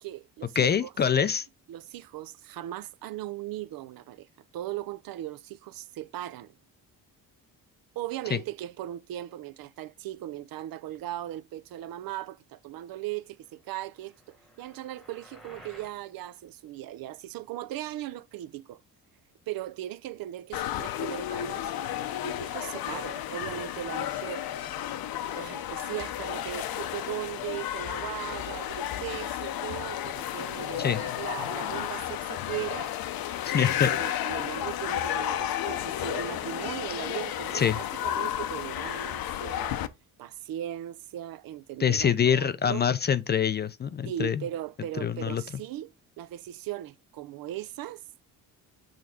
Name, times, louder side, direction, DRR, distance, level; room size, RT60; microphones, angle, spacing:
voice 1, 0.0-0.9 1.7-4.3 4.5-6.6 8.0-18.8 19.5-21.7 22.2-24.5 25.3-32.9 33.5-39.8 40.2-42.9 44.0-48.0, right 13 dB, 70° right, 0.5 m, -38 dB
voice 2, 0.6-1.5 8.3-8.4 30.8-31.0 33.4-33.9 37.5-37.8 41.8-44.4 45.0-45.4, left 8 dB, 30° left, 0.4 m, -25 dB
sound 1, 13.9-16.0, equal, ahead, 1.2 m, -53 dB
sound 2, 20.5-39.9, left 11 dB, 75° left, 0.7 m, -32 dB
6.4 x 3.5 x 4.9 m
cardioid pair, 140°, 37 cm